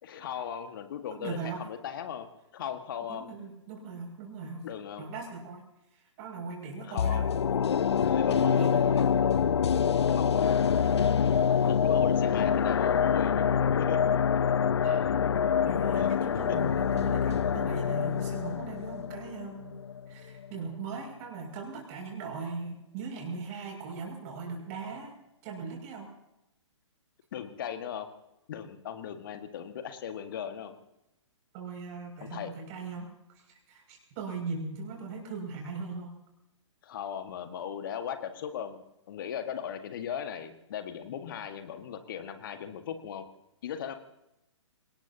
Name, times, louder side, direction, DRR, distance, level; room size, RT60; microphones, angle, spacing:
voice 1, 0.0-2.3 2.5-3.3 4.6-5.1 6.8-7.2 8.0-8.7 10.1-10.5 11.6-13.5 13.8-14.0 16.0-16.1 16.3-16.4 27.3-28.1 28.5-30.7 32.2-32.5 36.8-43.2 43.6-43.9, left 8 dB, 45° left, 8 dB, 1.7 m, -37 dB
voice 2, 1.1-1.6 3.1-4.7 5.0-5.6 5.9-7.3 8.3-9.1 9.7-9.9 14.8-15.1 15.6-19.7 20.1-26.1 31.5-36.1, right 4 dB, 30° right, 1 dB, 6.4 m, -39 dB
sound 1, 7.0-20.1 20.4-20.5, left 7 dB, 60° left, 0.5 m, -26 dB
25.5 x 19.5 x 2.9 m, 0.87 s
figure-of-eight pair, 125°, 16 cm